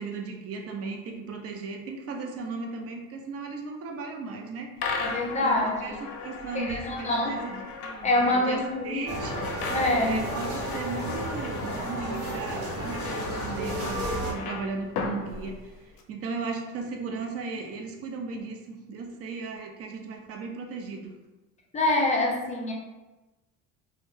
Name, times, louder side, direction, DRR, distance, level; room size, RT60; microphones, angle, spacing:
voice 1, 0.0-5.1 5.4-9.3 10.0-21.1, right 4 dB, 40° right, 2 dB, 0.4 m, -36 dB
sound 1, 4.8-16.0, left 4 dB, 75° left, 0.5 m, -37 dB
voice 2, 5.0-6.0 6.5-7.3 8.0-9.0 9.7-10.2 21.7-22.7, left 2 dB, 20° left, -2 dB, 0.4 m, -25 dB
sound 2, 9.1-14.3, right 1 dB, 80° right, 0.9 m, -33 dB
2.1 x 2.0 x 3.0 m, 1.1 s
cardioid pair, 115°, 36 cm